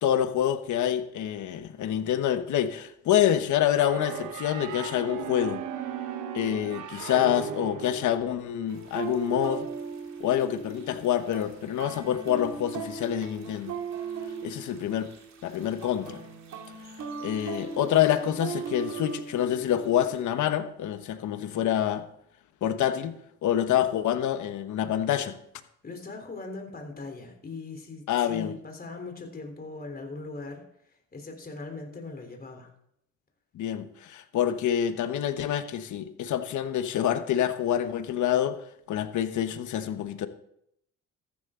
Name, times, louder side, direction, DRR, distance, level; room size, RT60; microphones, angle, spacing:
voice 1, 0.0-5.6 6.3-9.7 10.2-13.8 14.4-15.1 15.4-16.2 17.2-22.1 22.6-23.2 23.4-25.4 28.1-28.5 33.5-38.6 38.9-40.3, left 10 dB, 75° left, 1.2 m, -27 dB
sound 1, 3.8-8.5, right 8 dB, 85° right, 1.1 m, -36 dB
sound 2, 8.7-20.2, right 5 dB, 65° right, 2.4 m, -38 dB
voice 2, 25.8-32.7, left 3 dB, 30° left, 3.7 m, -40 dB
14.0 x 11.0 x 3.8 m
cardioid pair, 90°, 30 cm